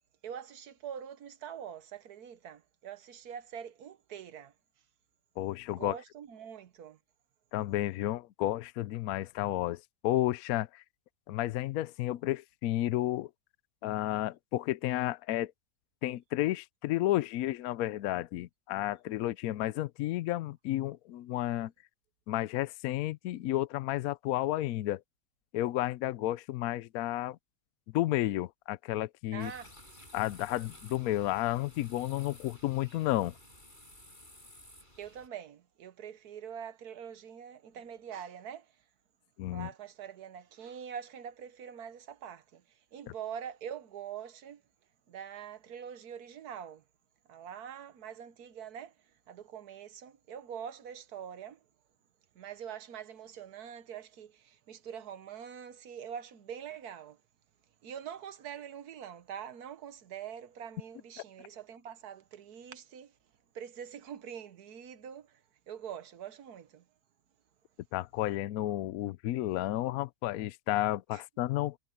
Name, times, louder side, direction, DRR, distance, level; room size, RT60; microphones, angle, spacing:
voice 1, 0.2-4.5 5.8-7.0 29.3-29.7 35.0-38.8 39.5-44.6 45.1-46.8 47.3-51.6 52.3-57.2 57.8-63.2 63.5-66.8 71.1-71.2, right 8 dB, 65° right, 1.5 m, -44 dB
voice 2, 5.4-6.0 7.5-10.8 11.3-13.3 13.8-15.5 16.0-21.7 22.3-25.0 25.5-27.4 27.9-29.5 30.1-33.3 39.4-39.7 67.9-71.8, left 15 dB, 70° left, 0.9 m, -32 dB
sound 1, 29.4-35.3, left 1 dB, 25° left, 8.1 m, -54 dB
omnidirectional pair, 1.9 m